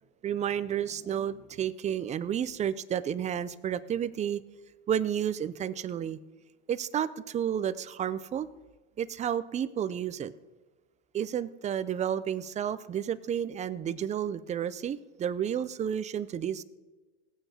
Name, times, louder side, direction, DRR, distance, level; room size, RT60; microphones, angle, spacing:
voice 1, 0.2-4.4 4.9-6.2 6.7-8.5 9.0-10.3 11.1-16.6, right 9 dB, 20° right, 15 dB, 0.4 m, -31 dB
18.0 x 8.9 x 2.8 m, 1.2 s
hypercardioid pair, 110°, 34 cm